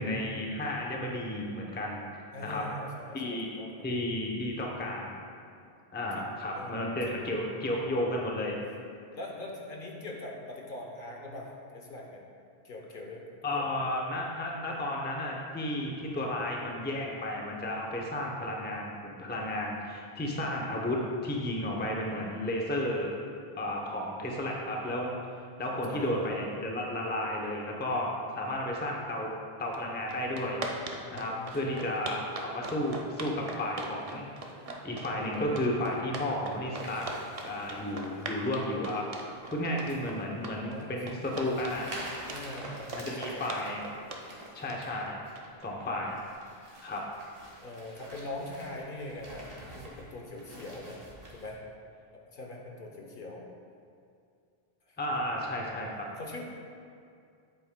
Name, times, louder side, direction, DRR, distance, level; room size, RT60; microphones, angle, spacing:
voice 1, 0.0-2.1 2.4-2.7 3.1-3.5 3.8-5.2 5.9-8.6 13.4-23.2 23.6-29.3 29.6-30.6 31.1-34.3 34.8-37.1 37.4-39.1 39.5-41.9 43.0-43.8 44.5-45.2 45.6-46.2 46.8-47.1 55.0-56.1, left 1 dB, 10° left, -1 dB, 0.6 m, -33 dB
voice 2, 2.3-3.9 6.1-6.2 6.5-7.2 9.1-12.2 12.6-13.2 13.5-13.8 14.6-14.8 25.7-26.3 31.0-31.8 40.7-41.3 42.3-43.6 47.6-51.0 51.3-51.6 52.1-53.4 54.9-55.0 56.2-56.4, left 2 dB, 55° left, 0 dB, 1.0 m, -42 dB
sound 1, 29.7-29.8 30.1-45.7, right 2 dB, 40° right, 0.6 m, -40 dB
sound 2, 36.7-38.5 38.9-39.3 39.9-40.1 40.6-40.7 41.2-44.9 45.3-45.5 45.9-51.5, right 1 dB, 60° right, 1.6 m, -47 dB
8.3 x 7.8 x 2.2 m, 2.4 s
omnidirectional pair, 1.1 m